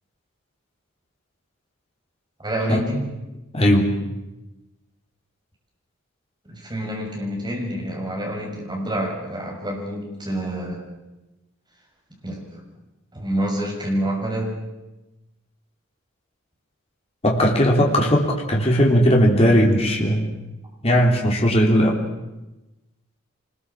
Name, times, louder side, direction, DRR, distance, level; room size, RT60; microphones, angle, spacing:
voice 1, 2.4-3.1 6.4-10.8 12.2-12.6 13.1-14.6, right 1 dB, 20° right, -1 dB, 6.4 m, -27 dB
voice 2, 3.5-3.9 17.2-20.3 20.8-22.0, equal, 30° left, 0 dB, 3.4 m, -18 dB
25.5 x 21.5 x 7.4 m, 1.0 s
head